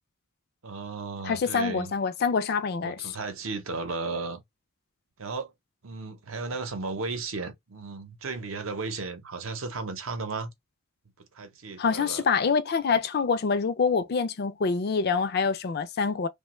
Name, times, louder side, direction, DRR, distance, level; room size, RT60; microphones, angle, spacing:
voice 1, 0.6-1.9 2.8-4.4 5.2-5.5 5.8-10.5 11.3-12.2, right 3 dB, 70° right, 0.7 m, -35 dB
voice 2, 1.2-3.1 11.8-16.3, left 5 dB, 50° left, 0.4 m, -26 dB
2.9 x 2.2 x 3.0 m
head